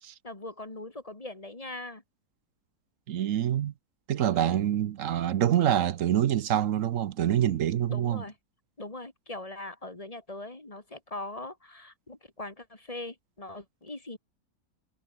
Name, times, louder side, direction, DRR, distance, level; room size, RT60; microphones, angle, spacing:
voice 1, 0.2-2.0 4.3-4.6 7.9-8.3 8.8-14.2, left 2 dB, 25° left, 2.4 m, -41 dB
voice 2, 3.1-3.7 4.1-8.2, right 10 dB, 65° right, 1.1 m, -26 dB
omnidirectional pair, 1.6 m